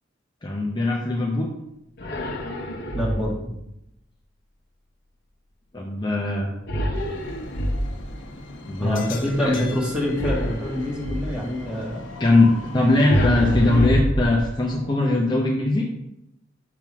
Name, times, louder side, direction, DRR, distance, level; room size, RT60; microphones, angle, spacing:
voice 1, 0.4-1.5 5.7-6.5 8.7-9.0 9.4-9.5 12.2-15.8, left 2 dB, 25° left, -2 dB, 0.7 m, -20 dB
sound 1, 2.0-3.5 6.7-8.2 10.2-11.4 13.1-14.8, equal, 60° left, 0.9 m, -26 dB
voice 2, 2.9-3.5 8.8-12.0, left 1 dB, 5° right, -3 dB, 1.5 m, -26 dB
sound 2, 6.9-13.9, left 2 dB, 85° left, 0.9 m, -39 dB
5.9 x 3.6 x 6.0 m, 0.85 s
head